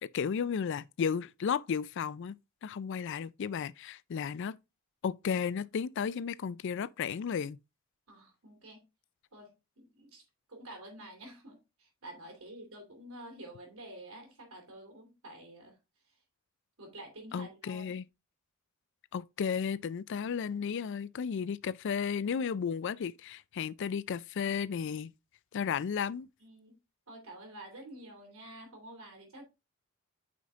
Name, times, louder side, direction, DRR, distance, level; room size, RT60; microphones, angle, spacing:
voice 1, 0.0-4.6 5.0-7.6 17.3-18.0 19.1-25.1 25.5-26.3, left 7 dB, 55° left, 0.4 m, -34 dB
voice 2, 8.1-8.8 9.3-15.8 16.0-16.1 16.8-18.0 26.4-26.8 27.1-29.4, right 1 dB, 75° right, 3.1 m, -49 dB
9.3 x 5.1 x 2.4 m
head